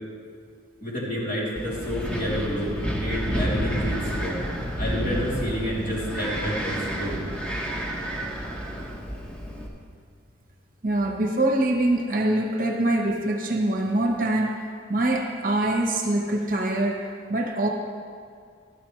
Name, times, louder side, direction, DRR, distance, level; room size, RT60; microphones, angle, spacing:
voice 1, 0.8-4.4 4.8-7.2, equal, 40° left, -7 dB, 3.3 m, -29 dB
Wind, 1.6-9.7, equal, 5° left, 1.0 m, -30 dB
voice 2, 10.8-17.7, right 1 dB, 45° right, 2 dB, 0.9 m, -24 dB
13.0 x 12.5 x 3.3 m, 2.2 s
head